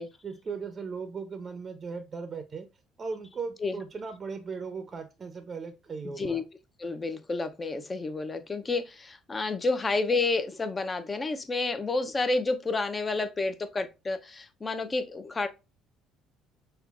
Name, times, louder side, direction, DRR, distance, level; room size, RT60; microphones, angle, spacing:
voice 1, 0.2-2.7 3.0-6.4, right 5 dB, 35° right, 0.6 m, -37 dB
voice 2, 6.8-15.5, left 3 dB, 30° left, 0.6 m, -30 dB
5.6 x 2.2 x 2.4 m
supercardioid pair, 80°, 0 cm